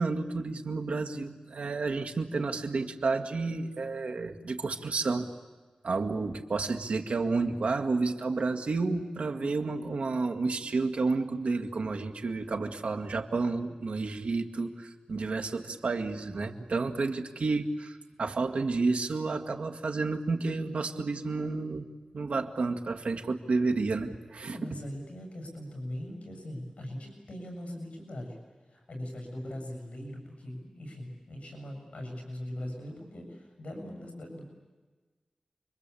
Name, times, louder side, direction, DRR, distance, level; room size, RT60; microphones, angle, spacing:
voice 1, 0.0-5.3 5.8-21.9 22.1-24.6, right 3 dB, 80° right, 5 dB, 2.0 m, -31 dB
voice 2, 24.5-28.4 28.7-34.5, left 1 dB, 70° left, 2 dB, 7.6 m, -40 dB
29.5 x 23.0 x 8.5 m, 1.3 s
wide cardioid pair, 85°, 2 cm